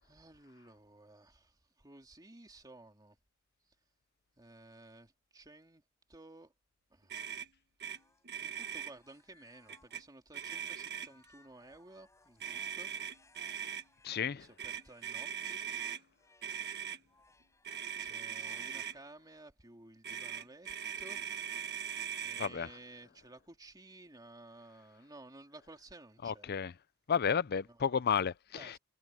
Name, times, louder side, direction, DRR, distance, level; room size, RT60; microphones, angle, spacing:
voice 1, 0.0-3.2 4.4-5.8 6.1-6.5 6.9-7.2 8.4-12.9 14.2-15.6 18.0-21.2 22.2-26.5 27.6-28.0 28.5-28.8, right 2 dB, 20° right, 2.8 m, -55 dB
Motor vehicle (road), 7.1-7.5 7.8-8.0 8.2-8.9 9.7-10.0 10.3-11.2 12.4-13.8 14.6-16.0 16.4-17.0 17.6-19.0 20.0-22.5, right 8 dB, 50° right, 1.5 m, -40 dB
sound 1, 7.9-15.5 16.1-16.7 17.1-18.8, left 3 dB, 15° left, 5.3 m, -67 dB
voice 2, 14.0-14.5 22.4-22.7 26.2-26.7 27.1-28.8, left 7 dB, 45° left, 0.5 m, -32 dB
head